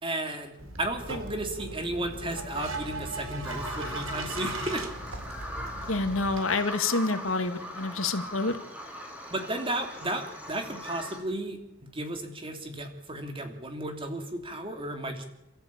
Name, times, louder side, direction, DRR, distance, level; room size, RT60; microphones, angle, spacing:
voice 1, 0.0-0.5 0.8-4.9 9.3-15.2, right 1 dB, 25° right, 5 dB, 3.1 m, -34 dB
sound 1, 0.6-6.4, right 2 dB, 80° right, 3.8 m, -38 dB
Bird vocalization bird call bird song, 3.4-11.2, equal, 5° right, 4.5 m, -40 dB
voice 2, 5.9-8.6, left 3 dB, 85° left, 8 dB, 2.0 m, -28 dB
28.5 x 14.0 x 8.8 m, 0.94 s
head